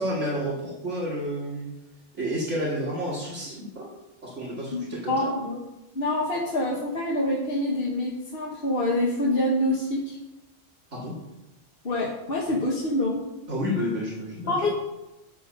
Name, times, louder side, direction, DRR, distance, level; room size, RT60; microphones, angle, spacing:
voice 1, 0.0-1.7 2.1-3.8 4.2-5.6 10.9-11.1 13.5-14.7, equal, 70° right, -5 dB, 2.6 m, -30 dB
voice 2, 4.7-5.4 5.9-10.2 11.8-13.2 14.5-14.7, left 1 dB, 50° left, -2 dB, 1.4 m, -26 dB
9.7 x 7.4 x 5.4 m, 0.98 s
omnidirectional pair, 1.3 m